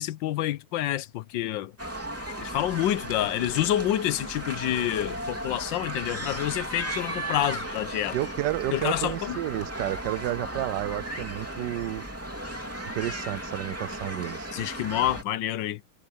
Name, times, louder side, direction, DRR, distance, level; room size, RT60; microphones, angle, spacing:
voice 1, 0.0-1.7 2.4-8.2 8.7-9.4 14.5-15.8, left 13 dB, 80° left, 1.4 m, -28 dB
sound 1, 1.8-15.2, right 1 dB, 5° right, 2.9 m, -35 dB
voice 2, 8.1-12.0 12.9-14.5, right 15 dB, 75° right, 1.2 m, -31 dB
omnidirectional pair, 2.0 m